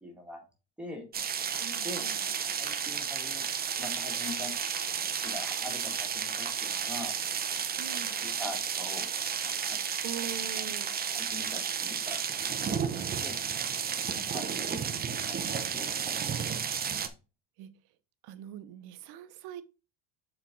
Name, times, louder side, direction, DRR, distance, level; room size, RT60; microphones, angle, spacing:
voice 1, 0.0-0.4 0.8-1.1 1.8-2.1 2.6-3.4 3.8-4.5 5.2-7.2 7.9-9.1 9.4-9.8 10.6-10.7 11.1-12.2 12.6-13.4 14.1-16.4, left 1 dB, 5° right, 2.0 m, -43 dB
sound 1, 1.1-17.1, right 7 dB, 20° right, 0.6 m, -32 dB
voice 2, 1.6-2.2 7.8-8.2 10.0-10.9 13.0-13.1 17.6-17.7 18.2-19.6, right 10 dB, 60° right, 0.8 m, -42 dB
6.6 x 4.4 x 3.8 m
cardioid pair, 135°, 42 cm